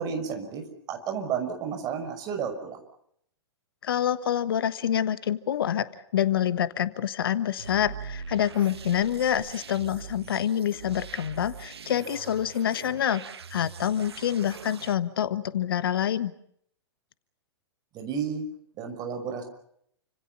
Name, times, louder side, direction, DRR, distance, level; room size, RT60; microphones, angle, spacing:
voice 1, 0.0-2.8 17.9-18.4 18.8-19.4, right 7 dB, 25° right, 6 dB, 6.1 m, -32 dB
voice 2, 3.8-5.9 6.1-13.2 13.5-16.3, left 10 dB, 55° left, 14 dB, 1.3 m, -26 dB
sound 1, 7.6-14.9, right 7 dB, 65° right, 1.5 m, -42 dB
29.5 x 26.5 x 5.8 m, 0.70 s
figure-of-eight pair, 110°, 14 cm